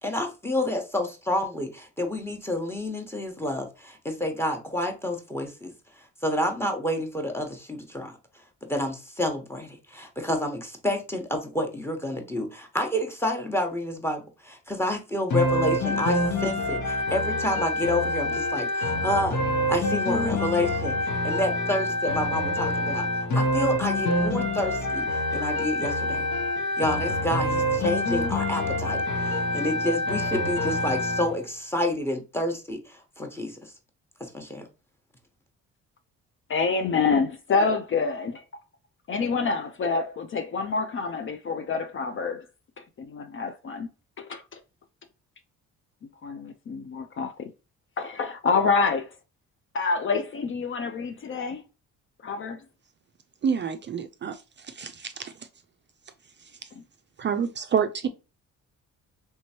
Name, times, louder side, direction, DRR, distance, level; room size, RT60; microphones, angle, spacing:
voice 1, 0.0-5.7 6.2-8.1 8.7-19.4 19.7-21.0 21.2-23.1 23.3-26.3 26.8-33.6 34.2-34.6, left 1 dB, 10° left, 1.1 m, -29 dB
sound 1, 15.3-31.3, left 1 dB, 75° left, 1.0 m, -26 dB
voice 2, 36.5-38.4 39.1-42.5 42.8-43.9 44.2-44.6 46.2-47.5 48.0-49.1 49.7-51.6 52.2-52.6, left 4 dB, 45° left, 0.5 m, -27 dB
voice 3, 53.4-55.3 57.2-58.1, right 7 dB, 40° right, 0.4 m, -28 dB
3.3 x 3.0 x 2.8 m
cardioid pair, 90°, 30 cm